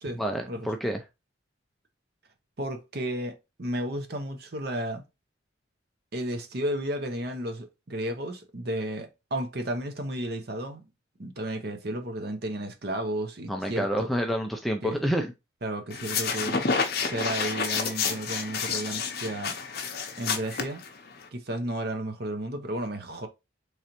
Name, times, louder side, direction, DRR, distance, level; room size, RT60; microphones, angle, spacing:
voice 1, 0.2-1.0 13.5-15.3, equal, ahead, 0.4 m, -28 dB
voice 2, 2.6-5.0 6.1-10.8 11.2-14.1 14.8-15.0 15.6-16.6 17.0-19.5 20.2-20.8 21.3-23.3, right 1 dB, 50° right, 0.8 m, -33 dB
sound 1, 15.9-21.3, left 5 dB, 50° left, 0.7 m, -29 dB
3.8 x 3.2 x 2.9 m
head